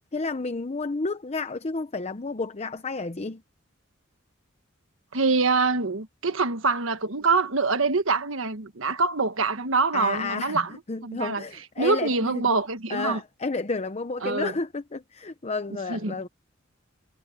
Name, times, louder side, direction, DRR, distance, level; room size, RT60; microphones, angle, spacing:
voice 1, 0.1-3.4 9.9-10.6 10.9-12.6 12.9-16.3, left 3 dB, 35° left, 0.7 m, -31 dB
voice 2, 5.1-11.4 11.8-13.2 14.2-14.5 15.9-16.3, right 4 dB, 80° right, 1.4 m, -25 dB
head